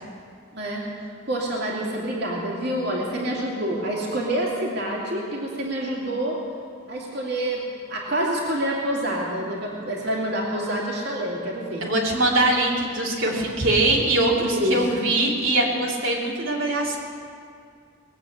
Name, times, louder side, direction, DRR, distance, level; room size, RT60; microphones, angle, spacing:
voice 1, 0.5-0.9 1.3-6.4 6.9-7.6 7.9-11.8 14.4-15.0, right 1 dB, 50° right, -3 dB, 2.6 m, -27 dB
voice 2, 11.8-17.0, right 2 dB, 75° right, -4 dB, 2.8 m, -22 dB
20.0 x 8.5 x 8.1 m, 2.2 s
head